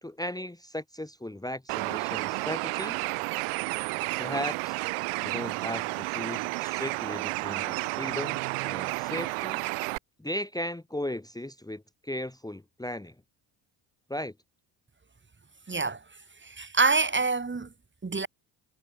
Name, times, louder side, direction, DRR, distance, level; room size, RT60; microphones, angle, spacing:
voice 1, 0.0-3.0 4.2-4.8 5.2-9.6 10.2-13.1 14.1-14.3, left 1 dB, 5° left, 1.6 m, -36 dB
Bird, 1.7-10.0, right 28 dB, 80° right, 2.0 m, -31 dB
voice 2, 15.7-16.0 16.4-17.7 18.0-18.3, right 4 dB, 20° right, 2.0 m, -26 dB
hypercardioid pair, 55°, 50 cm